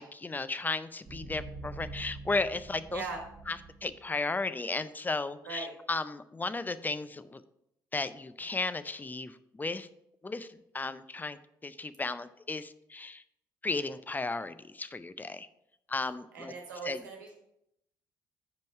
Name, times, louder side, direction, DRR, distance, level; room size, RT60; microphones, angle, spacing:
voice 1, 0.0-3.0 3.5-7.4 7.9-9.9 10.2-13.2 13.6-15.5 15.9-16.5 16.8-17.0, left 3 dB, 20° left, 13 dB, 0.5 m, -35 dB
sound 1, 1.0-4.2, right 2 dB, 50° right, 1.2 m, -45 dB
voice 2, 16.3-17.3, right 4 dB, 85° right, 2 dB, 1.3 m, -39 dB
7.1 x 5.2 x 4.6 m, 0.80 s
hypercardioid pair, 50°, 10 cm